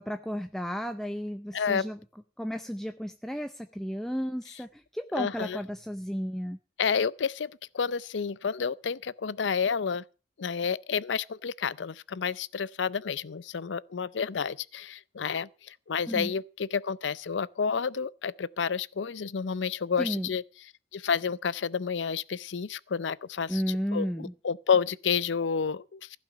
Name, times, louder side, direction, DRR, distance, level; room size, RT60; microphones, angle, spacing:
voice 1, 0.0-2.0 2.4-6.6 16.1-16.3 20.0-20.3 23.5-24.3, equal, ahead, 0.6 m, -33 dB
voice 2, 1.5-1.8 5.2-5.6 6.8-7.5 7.7-10.0 10.4-20.4 20.9-23.6 23.9-26.2, left 6 dB, 90° left, 0.5 m, -30 dB
15.5 x 5.9 x 8.5 m
head